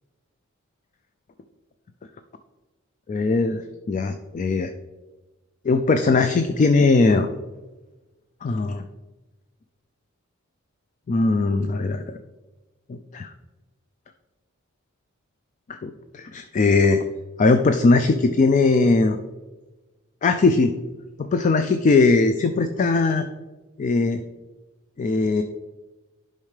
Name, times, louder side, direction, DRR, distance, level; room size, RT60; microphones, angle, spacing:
voice 1, 3.1-3.6 3.9-4.7 5.6-7.3 8.4-8.8 11.1-12.2 12.9-13.3 15.7-17.1 17.4-19.2 20.2-20.7 21.3-23.3 23.8-24.2 25.0-25.4, left 3 dB, 35° left, 9 dB, 0.3 m, -20 dB
10.5 x 5.5 x 3.3 m, 1.2 s
head